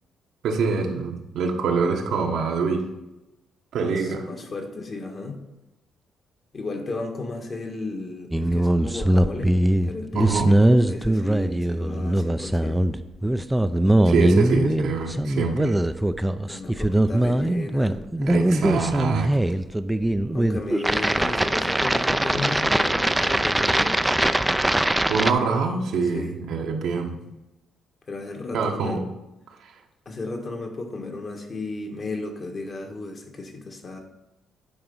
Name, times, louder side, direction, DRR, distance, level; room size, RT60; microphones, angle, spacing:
voice 1, 0.4-2.9 3.7-4.3 10.1-10.5 14.0-15.7 18.3-19.3 25.1-27.2 28.5-29.1 29.6-29.7, right 5 dB, 75° right, 2 dB, 1.2 m, -25 dB
voice 2, 3.8-5.4 6.5-9.5 9.8-12.8 16.5-19.1 20.3-24.0 26.1-26.4 28.1-29.0 30.0-34.0, left 3 dB, 40° left, 3 dB, 1.4 m, -34 dB
sound 1, 8.3-25.3, right 1 dB, 10° right, 0.4 m, -21 dB
8.9 x 3.9 x 5.4 m, 0.97 s
cardioid pair, 90°, 0 cm